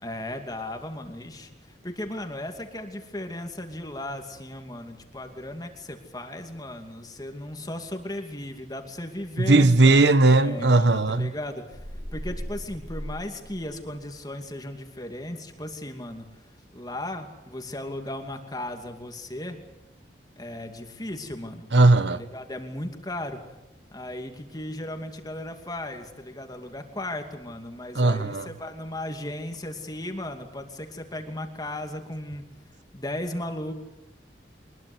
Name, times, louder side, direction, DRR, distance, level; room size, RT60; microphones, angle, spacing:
voice 1, 0.0-11.8 12.1-16.3 16.7-19.6 20.4-21.7 22.1-23.5 23.9-32.4 32.9-33.7, left 1 dB, 20° left, 2.5 m, -36 dB
voice 2, 9.4-11.3 21.7-22.2 27.9-28.5, right 2 dB, 80° right, 1.3 m, -18 dB
sound 1, 11.7-14.1, equal, 20° right, 6.7 m, -38 dB
24.0 x 21.0 x 8.0 m
head